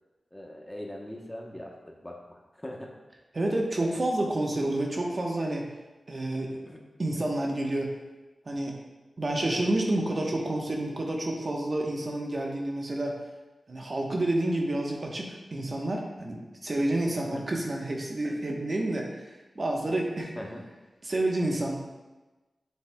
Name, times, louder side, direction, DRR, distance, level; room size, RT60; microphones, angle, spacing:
voice 1, 0.3-2.9 6.5-6.8 17.1-17.4 18.2-18.4 20.3-20.6, left 1 dB, 10° left, 0 dB, 0.9 m, -41 dB
voice 2, 3.3-5.6 6.1-6.6 7.0-7.9 8.5-8.7 9.2-13.1 13.7-19.1 19.5-20.3 21.0-21.8, right 1 dB, 45° right, 0 dB, 1.0 m, -29 dB
7.4 x 6.8 x 2.3 m, 1.1 s
wide cardioid pair, 70°, 0 cm